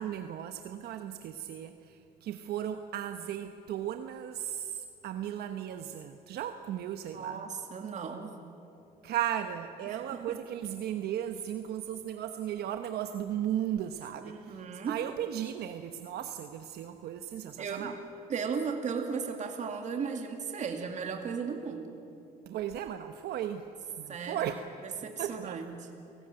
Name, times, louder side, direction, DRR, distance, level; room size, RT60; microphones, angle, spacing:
voice 1, 0.0-7.4 9.0-18.0 22.5-23.6 24.0-24.6 25.2-25.6, right 10 dB, 70° right, 8 dB, 1.1 m, -36 dB
voice 2, 7.1-8.4 9.9-10.4 14.2-15.0 17.6-18.0 18.3-21.9 24.1-24.5 24.8-25.9, right 6 dB, 45° right, 4 dB, 2.4 m, -36 dB
30.0 x 18.5 x 8.9 m, 2.7 s
cardioid pair, 110°, 17 cm